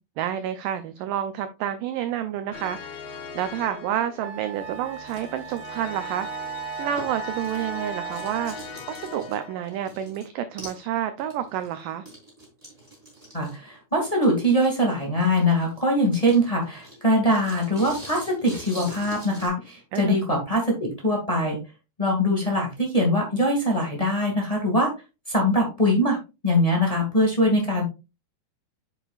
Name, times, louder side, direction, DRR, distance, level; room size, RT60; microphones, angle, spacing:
voice 1, 0.2-6.5 6.8-12.1 19.9-20.2, right 10 dB, 85° right, 1.9 m, -29 dB
sound 1, 2.5-9.8, left 4 dB, 85° left, 1.5 m, -40 dB
Wind instrument woodwind instrument, 3.5-3.6 4.2-8.8, right 9 dB, 65° right, 2.8 m, -37 dB
sound 2, 4.9-7.8 8.1-10.3 10.6-10.9 11.2-19.5, right 1 dB, 10° right, 3.6 m, -44 dB
voice 2, 13.3-21.6 22.0-24.9 25.3-26.2 26.4-27.8, equal, 35° left, 0.6 m, -22 dB
8.5 x 6.9 x 2.4 m
omnidirectional pair, 4.4 m